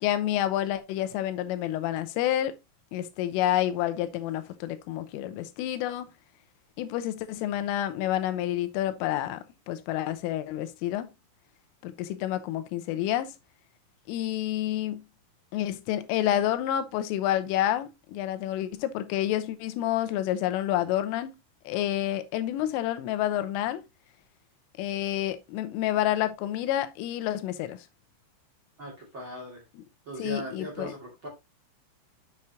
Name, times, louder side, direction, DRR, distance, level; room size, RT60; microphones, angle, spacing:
voice 1, 0.0-2.6 2.9-6.1 6.8-11.1 11.8-13.3 14.1-15.0 15.5-21.3 21.7-23.8 24.8-27.9 30.2-30.9, left 12 dB, 90° left, 3.4 m, -29 dB
voice 2, 28.8-29.6 30.1-31.3, right 1 dB, 35° right, 2.3 m, -39 dB
8.0 x 7.1 x 2.9 m
omnidirectional pair, 5.7 m